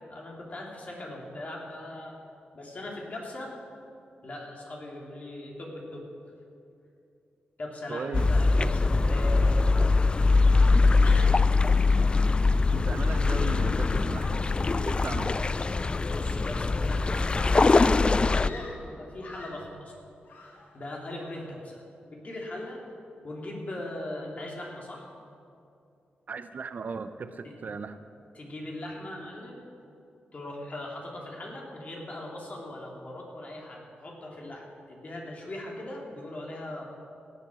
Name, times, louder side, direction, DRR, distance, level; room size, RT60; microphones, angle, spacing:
voice 1, 0.1-2.2 2.5-3.6 4.2-6.0 7.6-9.7 11.0-11.4 16.0-20.0 20.7-22.8 23.2-25.1 27.4-27.5 28.3-29.6 30.3-36.8, left 1 dB, 45° left, -1 dB, 3.1 m, -40 dB
voice 2, 7.9-8.3 12.7-14.6 14.8-15.4 26.3-28.0, right 5 dB, 55° right, 10 dB, 0.6 m, -37 dB
sound 1, 8.1-18.5, left 3 dB, 30° left, 0.3 m, -22 dB
Screaming, 18.3-19.7 20.2-20.9 21.2-21.6, left 2 dB, 75° left, 2.1 m, -48 dB
17.0 x 8.4 x 6.3 m, 2.6 s
cardioid pair, 80°, 3 cm